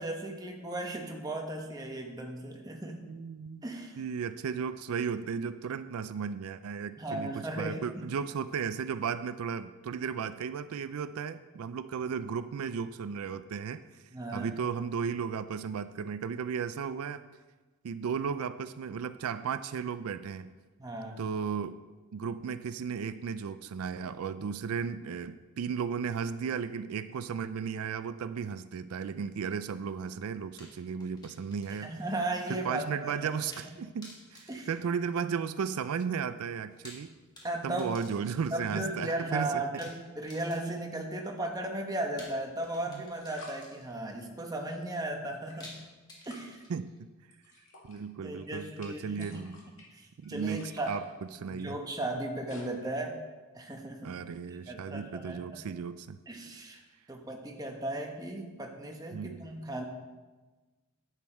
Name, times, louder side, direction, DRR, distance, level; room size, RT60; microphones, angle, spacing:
voice 1, 0.0-3.2 3.6-4.0 7.0-8.0 14.1-14.5 20.8-21.3 31.8-33.3 34.5-34.7 37.4-37.9 38.5-45.8 46.3-46.6 48.2-49.4 49.9-51.0 51.5-53.2 53.5-54.1 54.7-55.6 56.3-56.8 57.1-59.8, right 1 dB, 15° right, 1 dB, 1.1 m, -36 dB
voice 2, 3.0-3.6 4.0-14.0 14.3-17.2 17.8-20.5 21.2-21.8 22.1-31.9 32.5-37.1 37.6-39.6 42.9-43.0 46.7-47.1 47.9-49.6 50.2-51.1 51.3-51.8 54.0-56.2 59.1-59.4, right 6 dB, 80° right, 13 dB, 0.4 m, -35 dB
sound 1, 30.6-32.1 32.4-32.5 33.5-33.7 34.0-35.5 36.6-38.7 39.8-41.0 42.2-44.1 45.6-47.0, left 1 dB, 20° left, 1.8 m, -53 dB
sound 2, 42.2-42.3 43.1-43.6 45.2-45.9 46.3-46.6 47.3-48.0 48.3-52.6, left 2 dB, 65° left, 2.2 m, -54 dB
10.5 x 8.2 x 4.4 m, 1.3 s
head